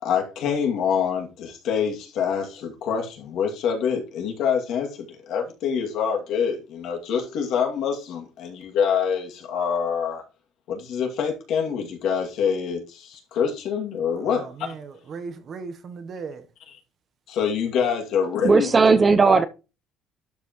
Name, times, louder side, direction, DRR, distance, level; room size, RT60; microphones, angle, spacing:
voice 1, 0.0-10.2 10.7-14.5 17.3-18.7, left 7 dB, 60° left, 2.4 m, -25 dB
voice 2, 14.1-16.5, right 5 dB, 40° right, 1.0 m, -37 dB
voice 3, 18.4-19.5, right 4 dB, 20° right, 0.6 m, -16 dB
11.5 x 5.4 x 3.1 m
cardioid pair, 155°, 0 cm